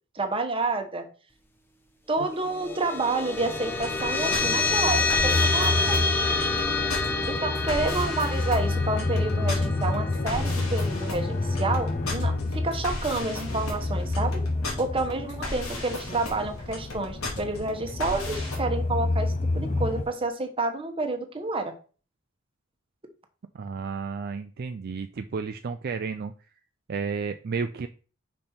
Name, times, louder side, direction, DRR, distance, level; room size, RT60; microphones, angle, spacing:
voice 1, 0.1-1.1 2.1-6.0 7.3-14.4 14.8-21.7, right 3 dB, 25° right, 5 dB, 1.1 m, -29 dB
sound 1, 2.3-13.1, left 3 dB, 10° left, 0.9 m, -29 dB
sound 2, 3.3-20.0, left 2 dB, 35° left, 0.6 m, -29 dB
sound 3, 3.7-18.6, left 2 dB, 85° left, 2.6 m, -36 dB
voice 2, 23.5-26.3 26.9-27.9, right 5 dB, 50° right, 8 dB, 0.4 m, -32 dB
5.4 x 5.2 x 4.4 m, 0.38 s
head